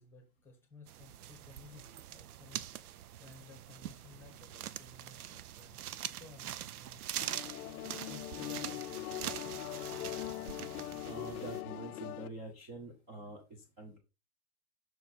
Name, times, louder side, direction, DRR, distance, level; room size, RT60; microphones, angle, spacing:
voice 1, 0.0-2.7 3.2-7.1 8.1-8.9, left 3 dB, 5° left, 0.9 m, -56 dB
sound 1, 0.9-11.6, right 12 dB, 85° right, 0.7 m, -44 dB
sound 2, 7.2-12.3, left 15 dB, 85° left, 0.6 m, -41 dB
voice 2, 11.1-14.0, right 2 dB, 15° right, 0.5 m, -46 dB
6.0 x 4.5 x 4.0 m
supercardioid pair, 170°, 44 cm